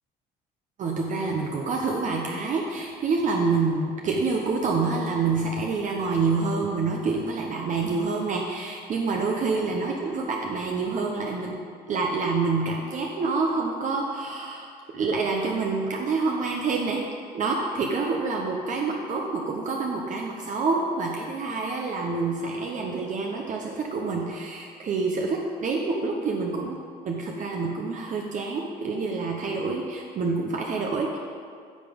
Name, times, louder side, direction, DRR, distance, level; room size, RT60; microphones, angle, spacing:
voice 1, 0.8-11.6 11.9-17.0 17.3-31.2, right 4 dB, 50° right, 0 dB, 1.0 m, -27 dB
10.5 x 5.9 x 5.2 m, 2.2 s
cardioid pair, 110°, 17 cm